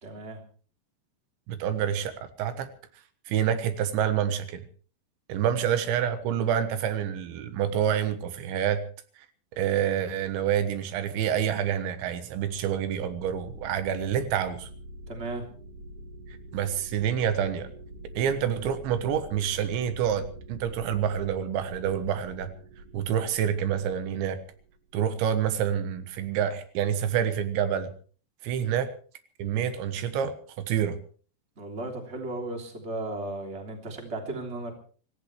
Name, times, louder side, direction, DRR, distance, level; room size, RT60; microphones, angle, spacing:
voice 1, 0.0-0.4 15.1-15.4 28.7-28.8 31.6-34.7, right 2 dB, 15° right, 2 dB, 2.8 m, -35 dB
voice 2, 1.5-2.7 3.3-4.6 5.3-8.8 9.6-14.7 16.5-17.7 18.2-22.5 22.9-24.4 24.9-27.9 28.4-28.9 29.4-31.0, right 9 dB, 85° right, 10 dB, 3.6 m, -27 dB
sound 1, 12.9-25.2, right 1 dB, 45° right, 2.1 m, -46 dB
25.5 x 15.0 x 3.3 m, 0.41 s
omnidirectional pair, 5.2 m